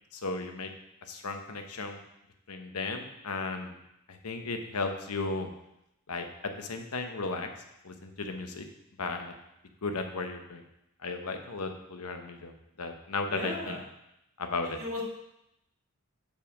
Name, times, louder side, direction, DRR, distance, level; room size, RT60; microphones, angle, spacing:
voice 1, 0.1-0.7 1.1-2.0 2.5-3.7 4.1-5.5 6.1-7.5 7.8-8.6 9.0-9.3 9.8-10.6 11.0-12.5 12.8-13.8 14.4-14.8, left 3 dB, 90° left, 5 dB, 0.9 m, -35 dB
voice 2, 13.3-13.8 14.6-15.0, left 1 dB, 70° right, -3 dB, 2.0 m, -36 dB
7.1 x 5.5 x 5.0 m, 0.84 s
head